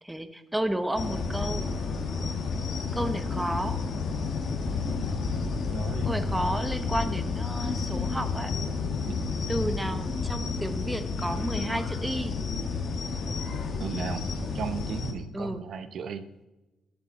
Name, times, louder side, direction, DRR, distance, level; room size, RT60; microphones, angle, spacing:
voice 1, 0.0-1.7 2.9-3.9 6.0-8.5 9.5-12.3 15.3-15.7, right 1 dB, 5° right, 10 dB, 1.0 m, -32 dB
sound 1, 0.9-15.1, left 4 dB, 55° left, 2.0 m, -31 dB
voice 2, 5.4-6.1 9.1-9.3 13.8-14.3 14.5-16.2, right 6 dB, 65° right, 11 dB, 0.9 m, -36 dB
18.5 x 7.8 x 4.2 m, 1.1 s
cardioid pair, 90°, 0 cm